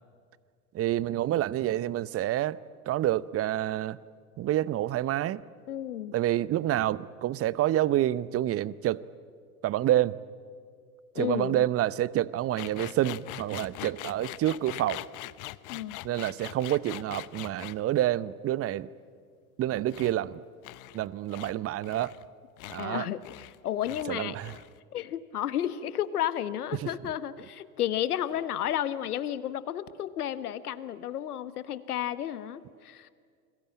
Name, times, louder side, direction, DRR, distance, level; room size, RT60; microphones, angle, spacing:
voice 1, 0.7-2.6 2.9-4.0 4.4-5.4 6.1-9.0 9.6-10.2 11.2-15.0 16.0-18.9 19.6-20.4 20.9-22.1 22.7-23.1 24.1-24.5 26.8-26.9, right 13 dB, 30° right, 0.8 m, -28 dB
voice 2, 5.7-6.1 11.1-11.6 15.7-16.0 22.8-24.4 24.9-33.1, left 11 dB, 75° left, 1.3 m, -32 dB
sound 1, 12.6-17.8 19.9-20.1 20.6-21.0 21.3-21.5 21.8-22.3 22.6-22.9 23.2-23.6 23.8-24.1 24.3-24.8, left 20 dB, 40° left, 0.8 m, -42 dB
29.5 x 22.0 x 8.9 m
hypercardioid pair, 85°, 45 cm